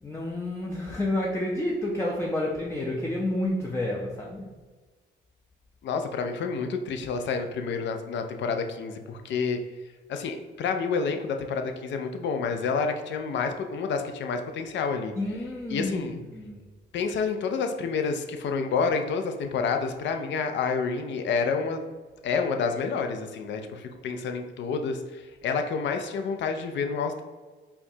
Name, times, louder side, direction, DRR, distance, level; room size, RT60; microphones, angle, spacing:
voice 1, 0.0-4.6 15.1-16.6, left 1 dB, 15° left, -2 dB, 0.5 m, -30 dB
voice 2, 5.8-9.6 10.1-15.1 15.7-16.2 16.9-21.8 22.2-27.2, left 5 dB, 65° left, 6 dB, 0.5 m, -29 dB
4.5 x 2.2 x 2.7 m, 1.4 s
cardioid pair, 90°, 20 cm